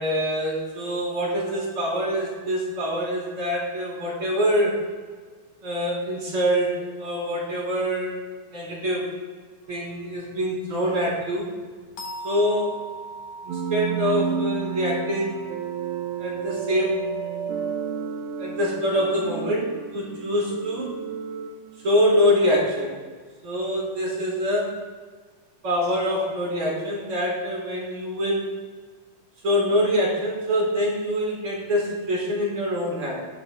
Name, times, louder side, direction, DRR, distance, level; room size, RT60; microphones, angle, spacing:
voice 1, 0.0-4.8 5.6-8.2 8.5-9.1 9.7-11.5 12.2-12.9 13.4-15.4 16.2-17.0 18.4-20.9 21.8-23.0 23.4-24.8 25.6-28.5 29.4-33.2, equal, 45° right, -4 dB, 4.6 m, -25 dB
sound 1, 9.6-17.5, right 2 dB, 75° left, 2.9 m, -41 dB
sound 2, 13.5-22.4, right 7 dB, 75° right, 1.2 m, -32 dB
19.0 x 12.0 x 2.2 m, 1.5 s
omnidirectional pair, 3.4 m